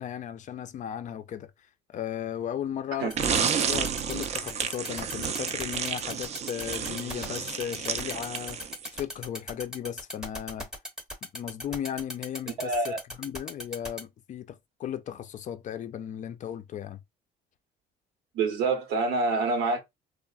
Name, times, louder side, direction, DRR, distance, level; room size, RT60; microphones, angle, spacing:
voice 1, 0.0-1.5 1.9-8.6 8.9-10.7 11.3-17.0, left 10 dB, 45° left, 0.4 m, -36 dB
sound 1, 3.1-14.0, left 1 dB, 5° right, 0.7 m, -36 dB
sound 2, 3.2-9.0, right 7 dB, 40° right, 0.4 m, -31 dB
voice 2, 12.6-13.0 18.3-19.8, right 3 dB, 90° right, 0.8 m, -26 dB
3.1 x 2.0 x 2.3 m
cardioid pair, 110°, 17 cm